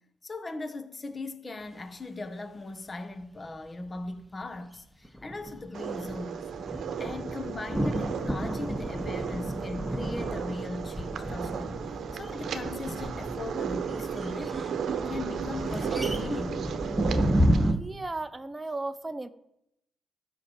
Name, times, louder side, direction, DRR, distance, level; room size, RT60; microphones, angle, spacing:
voice 1, 0.2-6.5 7.0-14.8 15.0-16.7, left 2 dB, 30° left, 1.2 m, -39 dB
sound 1, 5.0-17.8, equal, ahead, 1.0 m, -31 dB
sound 2, 5.7-17.7, right 7 dB, 65° right, 1.0 m, -35 dB
voice 2, 17.7-19.3, right 2 dB, 20° right, 0.6 m, -35 dB
13.0 x 5.8 x 7.2 m
cardioid pair, 75°, 0 cm